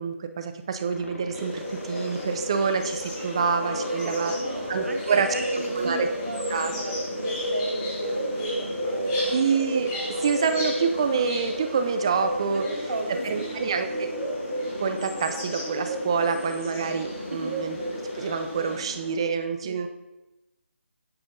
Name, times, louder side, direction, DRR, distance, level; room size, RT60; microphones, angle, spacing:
voice 1, 0.0-4.3 4.7-5.3 5.8-6.1 6.5-6.7 9.3-12.7 13.2-14.1 14.8-17.8 18.1-19.9, right 6 dB, 25° right, 8 dB, 0.4 m, -27 dB
Aircraft, 0.9-19.2, left 2 dB, 75° left, 1.2 m, -40 dB
sound 1, 1.3-18.8, equal, 15° left, 1.1 m, -31 dB
voice 2, 3.4-9.3 12.5-13.5 17.3-17.6 19.6-19.7, right 2 dB, 80° right, 4 dB, 1.3 m, -36 dB
8.0 x 5.6 x 3.9 m, 1.0 s
hypercardioid pair, 170°, 7 cm